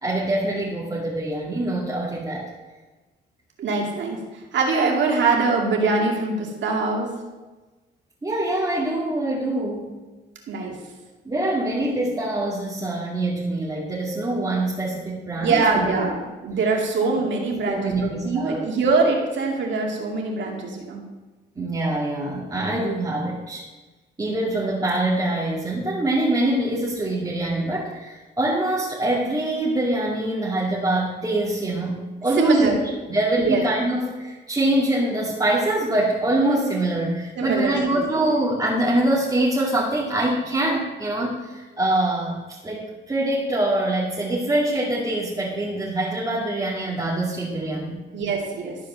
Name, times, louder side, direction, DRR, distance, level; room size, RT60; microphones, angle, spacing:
voice 1, 0.0-2.5 8.2-10.0 11.2-15.9 17.1-17.2 17.7-18.7 21.6-23.6 24.2-32.8 33.1-48.0, right 1 dB, 20° right, -7 dB, 2.4 m, -24 dB
voice 2, 3.6-4.2 4.5-7.2 10.5-10.7 15.4-21.0 32.4-32.8 33.4-33.6 37.4-38.1 48.1-48.8, right 4 dB, 65° right, 0 dB, 2.4 m, -23 dB
13.0 x 4.9 x 6.4 m, 1.2 s
cardioid pair, 90°, 20 cm